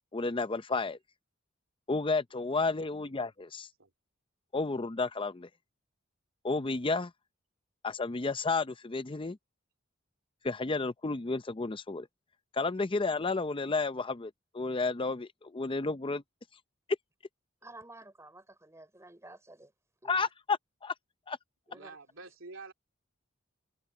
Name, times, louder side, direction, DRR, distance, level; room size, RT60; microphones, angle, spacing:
voice 1, 0.1-1.0 1.9-3.7 4.5-5.5 6.4-7.1 7.8-9.4 10.4-12.1 12.5-16.2 20.0-20.9 21.3-21.4, left 3 dB, 25° left, 0.6 m, -32 dB
voice 2, 2.5-2.9 3.8-3.9 21.7-22.7, right 3 dB, 75° right, 2.9 m, -48 dB
voice 3, 17.6-19.7 20.0-20.3 21.7-21.9, right 2 dB, 15° right, 5.2 m, -51 dB
head